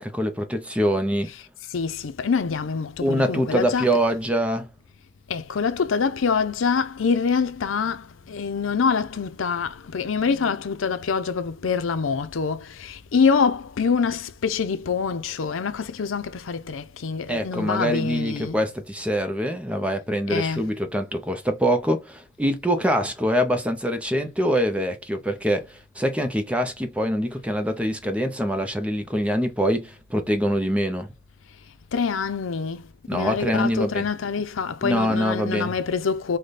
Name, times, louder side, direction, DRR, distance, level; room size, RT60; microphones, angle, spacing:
voice 1, 0.0-1.3 3.0-4.7 17.3-31.1 33.1-34.0 34.8-35.7, equal, 5° right, 0.5 m, -24 dB
voice 2, 1.3-3.9 5.3-18.6 20.3-20.7 31.9-36.4, left 5 dB, 90° left, 0.6 m, -25 dB
4.9 x 2.2 x 4.0 m
head